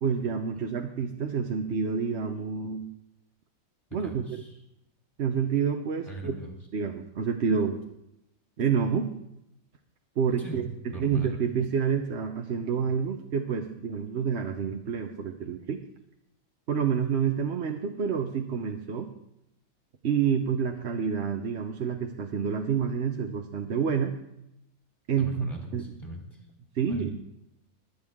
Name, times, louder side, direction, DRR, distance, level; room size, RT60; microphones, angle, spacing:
voice 1, 0.0-2.9 3.9-4.2 5.2-6.3 6.7-7.8 8.6-9.1 10.2-10.7 10.9-15.8 16.7-19.1 20.0-24.1 25.1-25.9 26.7-27.1, right 6 dB, 55° right, 4 dB, 1.0 m, -28 dB
voice 2, 4.0-4.5 6.0-6.6 10.4-11.4 25.2-26.4 26.9-27.1, right 1 dB, 25° left, -1 dB, 2.9 m, -40 dB
22.0 x 8.2 x 3.6 m, 0.82 s
omnidirectional pair, 1.5 m